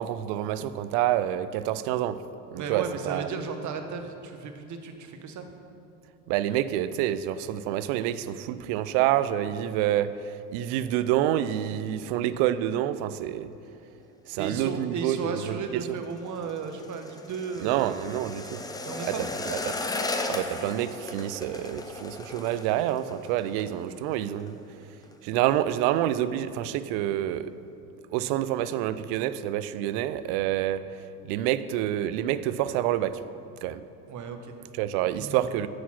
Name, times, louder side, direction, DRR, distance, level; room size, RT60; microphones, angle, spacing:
voice 1, 0.0-2.2 2.5-3.3 6.3-13.5 14.3-15.6 17.6-18.6 19.5-19.7 20.3-24.6 25.2-27.5 28.1-30.8 31.2-33.2 33.6-33.8 34.7-35.7, right 12 dB, 55° right, 13 dB, 0.5 m, -27 dB
voice 2, 2.6-5.5 14.4-17.8 18.8-19.3 34.1-34.6 35.1-35.5, right 5 dB, 40° right, 6 dB, 1.0 m, -35 dB
sound 1, 15.5-24.6 24.8-25.2 25.5-26.0 26.3-26.4, left 2 dB, 10° left, 0.5 m, -36 dB
9.5 x 4.2 x 5.9 m, 2.8 s
hypercardioid pair, 75°, 48 cm